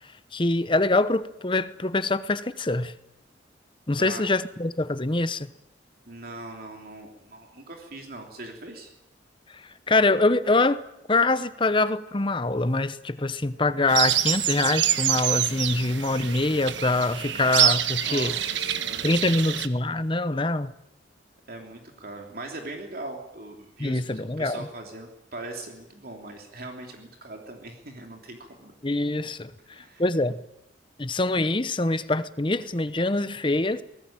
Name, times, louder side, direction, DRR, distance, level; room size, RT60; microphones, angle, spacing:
voice 1, 0.3-2.9 3.9-5.5 9.9-10.8 11.1-18.3 19.0-20.7 23.8-24.7 28.8-29.5 30.0-30.4 31.0-33.8, left 2 dB, 25° left, 14 dB, 0.9 m, -24 dB
voice 2, 4.0-4.3 6.1-8.9 18.0-19.6 21.5-28.7 29.7-30.0, right 2 dB, 50° right, 2 dB, 3.3 m, -41 dB
sound 1, 13.9-19.7, right 11 dB, 75° right, 1.3 m, -26 dB
23.5 x 19.0 x 8.9 m, 0.87 s
head